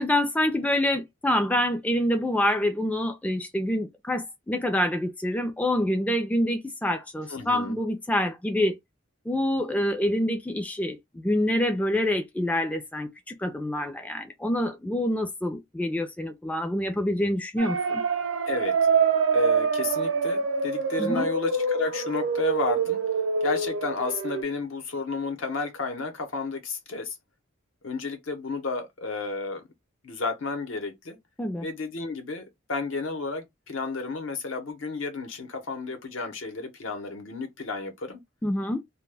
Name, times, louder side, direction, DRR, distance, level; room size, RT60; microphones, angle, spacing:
voice 1, 0.0-8.8 9.3-18.0 21.0-21.3 31.4-31.7 38.4-38.8, left 1 dB, 5° left, 0.3 m, -26 dB
voice 2, 7.3-7.8 18.5-18.8 19.3-23.0 23.4-27.2 27.8-29.6 30.0-31.2 31.6-38.2, left 3 dB, 65° left, 0.8 m, -32 dB
sound 1, 17.6-24.4, right 5 dB, 80° right, 0.5 m, -25 dB
2.2 x 2.1 x 3.3 m
head